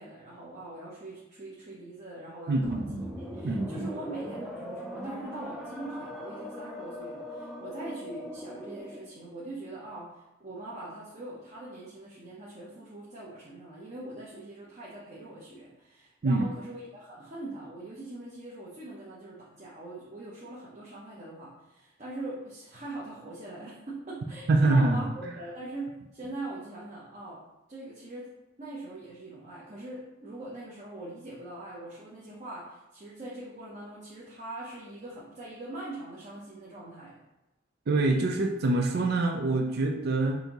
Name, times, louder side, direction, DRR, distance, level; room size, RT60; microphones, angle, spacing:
voice 1, 0.0-27.4 27.7-28.3 28.6-37.2, right 2 dB, 40° right, -7 dB, 0.8 m, -42 dB
voice 2, 2.5-3.1 3.4-3.9 16.2-16.5 24.5-25.0 37.9-40.4, right 2 dB, 55° right, 3 dB, 0.4 m, -25 dB
sound 1, 2.6-9.1, equal, ahead, 0.5 m, -40 dB
5.6 x 2.6 x 3.0 m, 0.98 s
head